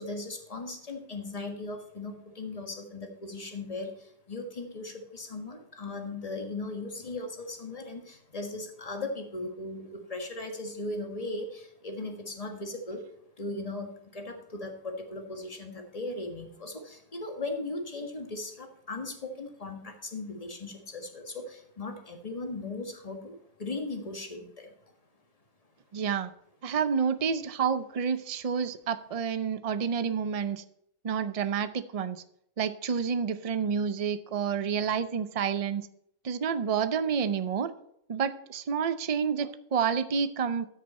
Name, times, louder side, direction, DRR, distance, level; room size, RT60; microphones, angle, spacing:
voice 1, 0.0-4.0 4.3-13.0 13.4-23.3 23.6-24.7, left 2 dB, 25° left, 4 dB, 1.6 m, -38 dB
voice 2, 25.9-26.3 26.6-30.6 31.0-32.2 32.6-35.9 36.2-37.7 38.1-40.7, right 6 dB, 45° right, 12 dB, 0.4 m, -29 dB
13.5 x 6.6 x 4.2 m, 0.74 s
omnidirectional pair, 1.5 m